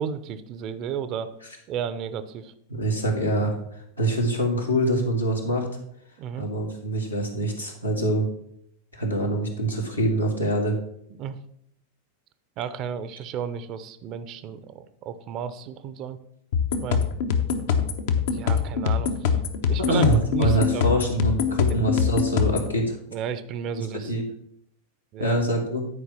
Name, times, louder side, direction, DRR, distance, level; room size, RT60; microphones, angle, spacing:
voice 1, 0.0-1.3 1.7-2.5 6.2-6.5 11.2-11.4 12.6-16.2 16.8-17.1 18.3-19.4 19.7-20.1 20.3-20.9 23.1-24.1 25.1-25.4, right 8 dB, 35° right, 13 dB, 0.7 m, -33 dB
voice 2, 2.7-5.7 6.4-8.3 8.9-10.8 19.9-23.0 23.8-24.2 25.2-25.9, right 1 dB, 85° left, -1 dB, 1.9 m, -25 dB
sound 1, 16.5-22.7, left 7 dB, 55° left, 0.9 m, -24 dB
9.7 x 4.8 x 5.9 m, 0.72 s
figure-of-eight pair, 90°, 0 cm